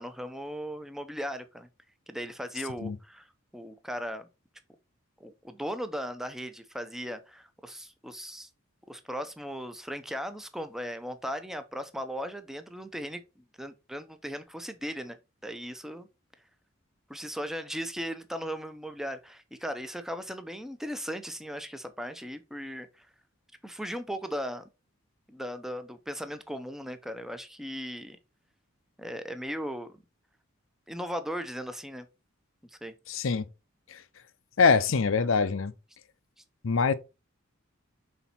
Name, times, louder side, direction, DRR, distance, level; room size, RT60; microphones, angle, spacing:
voice 1, 0.0-1.7 2.1-3.3 3.5-4.3 5.2-8.5 8.9-13.2 13.6-15.2 15.4-16.1 17.1-23.1 23.6-24.6 25.3-28.2 29.0-29.9 30.9-32.1 32.7-32.9, equal, ahead, 0.7 m, -37 dB
voice 2, 33.1-33.5 33.9-34.0 34.6-35.7 36.6-36.9, left 5 dB, 75° left, 0.6 m, -24 dB
5.8 x 4.0 x 4.2 m
head